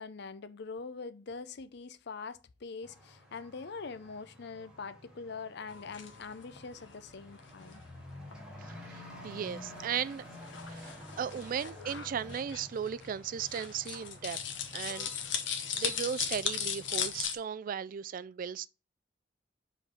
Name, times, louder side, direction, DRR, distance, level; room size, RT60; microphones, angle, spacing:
voice 1, 0.0-7.8, left 4 dB, 60° left, 0.6 m, -43 dB
Truck / Accelerating revving vroom, 2.8-17.2, left 1 dB, 5° right, 1.8 m, -50 dB
sound 1, 5.7-17.4, left 7 dB, 80° left, 1.1 m, -39 dB
voice 2, 8.6-10.2 10.7-14.4 14.7-15.1 15.7-18.7, right 8 dB, 45° right, 0.3 m, -36 dB
5.0 x 3.9 x 5.6 m
head